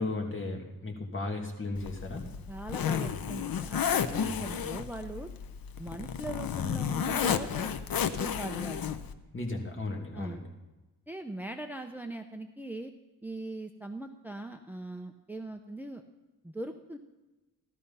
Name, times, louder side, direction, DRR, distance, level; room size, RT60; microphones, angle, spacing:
voice 1, 0.0-2.3 4.2-4.3 9.3-10.5, left 2 dB, 35° left, 1 dB, 2.7 m, -35 dB
Zipper (clothing), 1.7-9.1, left 8 dB, 80° left, 0.9 m, -32 dB
voice 2, 2.5-5.3 5.8-7.7 8.2-8.8 10.1-10.4 11.1-12.9 13.2-16.0 16.4-17.0, right 1 dB, 5° right, 5 dB, 0.8 m, -40 dB
15.5 x 13.0 x 5.6 m, 1.1 s
wide cardioid pair, 125°, 35 cm